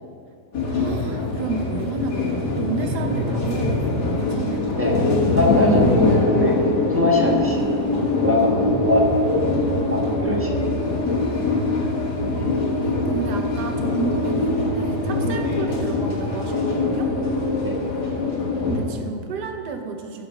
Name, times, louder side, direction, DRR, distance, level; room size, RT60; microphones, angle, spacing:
sound 1, 0.5-18.8, left 2 dB, 80° left, 2.1 m, -23 dB
voice 1, 0.7-5.1 8.5-10.1 12.3-17.1 18.7-20.3, right 5 dB, 85° right, 5 dB, 1.5 m, -32 dB
voice 2, 5.3-6.6 6.9-7.7 8.2-9.0 9.3-9.4 9.7-10.7 17.6-17.8, left 1 dB, 10° right, -2 dB, 1.1 m, -22 dB
11.5 x 5.0 x 6.4 m, 2.2 s
omnidirectional pair, 1.8 m